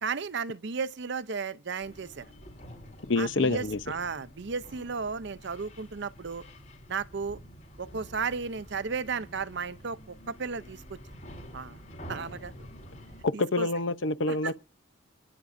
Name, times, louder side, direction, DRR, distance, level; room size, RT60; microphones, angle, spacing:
voice 1, 0.0-2.3 3.2-6.4 6.9-7.4 7.8-11.0 11.5-11.8 12.1-12.7 13.3-13.7 14.3-14.5, right 5 dB, 60° right, 0.6 m, -34 dB
sound 1, 1.8-13.2, equal, 40° left, 4.8 m, -48 dB
voice 2, 3.1-3.8 13.2-14.6, left 3 dB, 65° left, 0.7 m, -27 dB
27.5 x 10.0 x 2.6 m
head